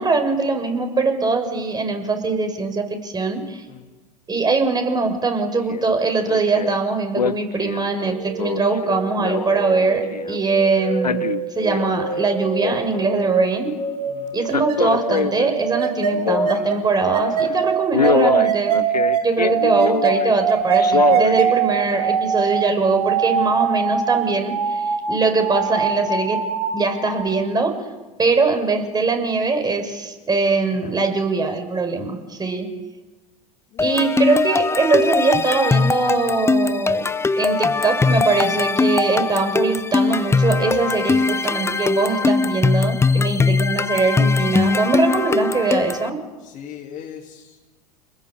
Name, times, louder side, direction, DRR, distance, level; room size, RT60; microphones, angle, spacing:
voice 1, 0.0-3.6 4.3-11.3 11.6-13.7 14.3-18.8 19.2-26.4 26.7-27.7 28.2-32.7 33.8-37.0 37.4-46.2, right 3 dB, 20° right, 6 dB, 6.3 m, -21 dB
Male speech man speaking, 5.7-5.9 6.3-6.8 7.2-10.4 10.8-12.2 12.4-13.3 14.4-16.8 17.2-17.5 17.9-20.3 20.8-21.5 22.0-22.1, left 6 dB, 90° left, 0.8 m, -24 dB
sound 1, 8.1-27.2, right 6 dB, 75° right, 4.7 m, -24 dB
voice 2, 31.9-32.2 33.7-34.1 43.0-43.2 46.4-47.6, left 9 dB, 40° left, 1 dB, 3.4 m, -40 dB
sound 2, 33.8-46.1, left 4 dB, 15° left, 1.0 m, -20 dB
29.5 x 20.5 x 8.3 m, 1.2 s
hypercardioid pair, 85°, 20 cm